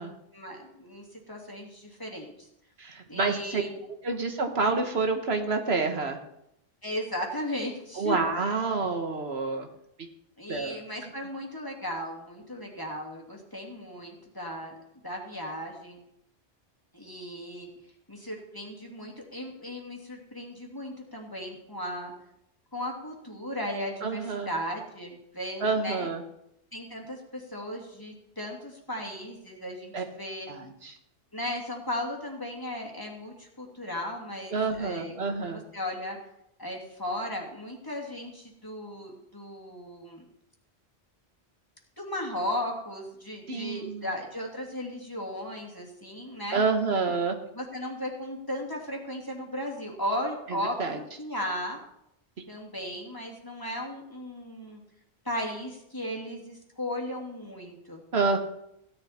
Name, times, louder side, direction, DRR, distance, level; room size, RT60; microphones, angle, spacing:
voice 1, 0.3-2.5 3.1-3.8 6.8-8.2 10.4-14.8 15.0-16.0 16.9-17.7 18.1-22.1 22.7-26.1 26.7-30.5 31.3-36.2 36.6-40.2 42.0-46.6 47.5-51.8 52.5-54.8 55.2-58.0, left 1 dB, 20° left, -1 dB, 2.7 m, -36 dB
voice 2, 2.8-3.6 4.0-6.2 8.0-9.7 10.0-10.1 10.5-10.8 24.0-24.5 25.6-26.2 29.9-30.0 30.5-31.0 34.5-35.6 43.5-44.0 46.5-47.4 50.8-51.0 58.1-58.4, right 4 dB, 70° right, 4 dB, 1.6 m, -28 dB
16.5 x 10.5 x 4.3 m, 0.79 s
omnidirectional pair, 1.1 m